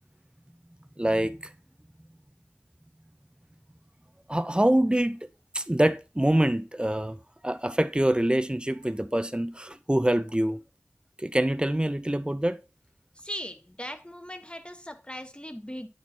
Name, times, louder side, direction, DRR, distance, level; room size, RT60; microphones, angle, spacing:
voice 1, 1.0-1.5 4.3-5.2 5.5-7.2 7.4-10.6 11.2-12.6, right 1 dB, 20° right, 0.6 m, -25 dB
voice 2, 13.2-15.9, equal, 20° left, 1.1 m, -39 dB
9.9 x 4.6 x 4.3 m
wide cardioid pair, 45°, 5 cm